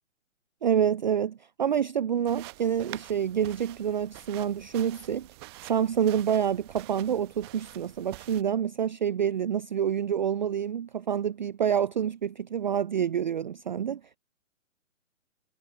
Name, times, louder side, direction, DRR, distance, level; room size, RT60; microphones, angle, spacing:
voice 1, 0.6-5.3 5.6-14.2, right 8 dB, 35° right, 0.5 m, -27 dB
sound 1, 2.3-8.4, right 23 dB, 20° right, 0.9 m, -47 dB
figure-of-eight pair, 135°, 40 cm